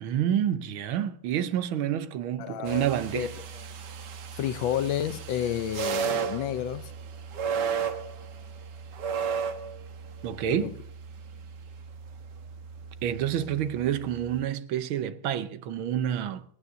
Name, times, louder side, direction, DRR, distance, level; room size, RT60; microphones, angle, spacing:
voice 1, 0.0-3.3 10.2-10.7 13.0-16.4, right 10 dB, 85° right, 1.7 m, -28 dB
voice 2, 2.4-2.9 3.1-3.3 4.4-6.9 10.5-10.7, left 10 dB, 75° left, 1.4 m, -30 dB
sound 1, 2.7-14.4, right 6 dB, 60° right, 1.6 m, -35 dB
26.0 x 9.4 x 2.7 m
omnidirectional pair, 2.2 m